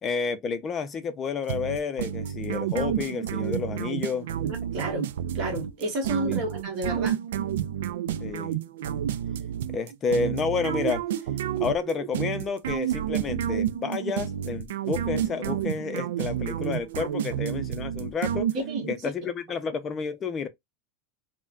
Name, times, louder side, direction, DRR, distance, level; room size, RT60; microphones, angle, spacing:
voice 1, 0.0-4.3 6.2-6.4 8.2-8.6 9.7-11.0 11.6-18.5 18.9-20.5, left 5 dB, 20° left, 0.5 m, -30 dB
sound 1, 1.5-19.0, right 10 dB, 85° right, 0.3 m, -30 dB
voice 2, 4.4-5.1 5.3-7.2 18.5-18.9, right 1 dB, 45° right, 1.2 m, -31 dB
3.4 x 2.1 x 2.4 m
supercardioid pair, 160°, 0 cm